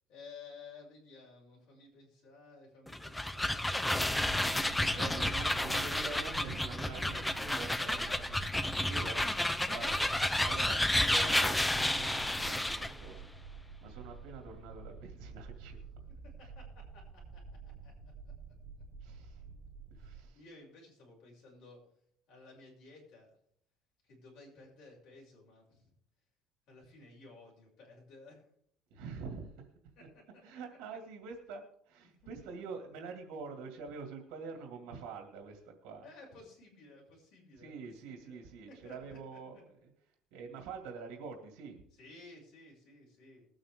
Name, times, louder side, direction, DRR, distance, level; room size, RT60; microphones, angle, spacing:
voice 1, 0.1-4.0 4.8-5.4 6.8-7.1 7.5-8.8 9.7-9.9 16.2-17.4 17.8-17.9 20.0-21.8 22.3-23.3 24.0-25.9 26.7-28.4 30.0-30.4 30.9-31.0 32.0-32.6 34.8-34.9 36.0-39.4 41.9-43.5, left 3 dB, 50° left, -2 dB, 6.4 m, -55 dB
sound 1, 2.9-13.0, left 1 dB, 5° left, 0.4 m, -31 dB
sound 2, 4.0-20.2, right 5 dB, 25° right, 0.8 m, -49 dB
voice 2, 4.7-8.0 8.8-9.3 9.7-10.0 10.4-15.8 19.0-19.4 19.9-20.4 28.9-29.5 30.4-36.0 37.6-39.6 40.3-41.8, right 5 dB, 75° right, 3 dB, 2.4 m, -46 dB
20.5 x 8.9 x 3.7 m, 0.67 s
cardioid pair, 165°, 0 cm